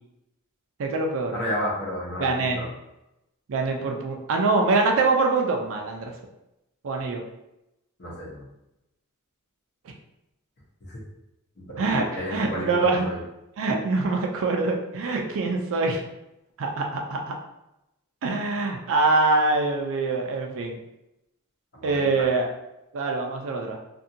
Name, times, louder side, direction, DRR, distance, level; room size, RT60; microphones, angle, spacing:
voice 1, 0.8-1.4 2.2-2.6 3.5-6.1 6.8-7.2 11.8-13.0 13.6-16.0 16.6-17.4 18.2-20.8 21.8-22.5 22.9-23.8, right 3 dB, 65° right, 2 dB, 0.4 m, -24 dB
voice 2, 1.3-2.7 8.0-8.5 10.8-11.0 11.6-13.2 21.7-22.3, equal, 50° left, -4 dB, 0.9 m, -32 dB
2.6 x 2.5 x 2.7 m, 0.90 s
head